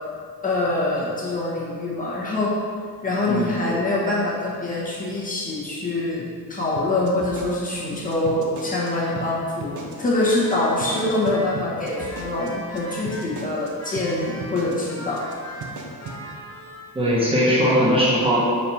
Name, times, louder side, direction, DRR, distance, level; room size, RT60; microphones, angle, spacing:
voice 1, 0.4-2.6 3.0-6.2 6.5-15.6, left 2 dB, 20° left, -6 dB, 1.2 m, -25 dB
voice 2, 3.3-3.8 16.9-18.5, equal, 15° right, -6 dB, 1.2 m, -20 dB
sound 1, 6.8-8.9 9.2-9.3 9.6-10.1 10.4-10.5 10.8-13.7 14.0-14.1 14.4-14.9 15.2-15.3 15.6-16.2, right 4 dB, 55° right, 0.8 m, -36 dB
sound 2, 8.7-9.5 10.1-13.5 13.8-16.9, equal, 40° left, 0.9 m, -40 dB
5.1 x 4.4 x 4.2 m, 2.2 s
wide cardioid pair, 165°, 38 cm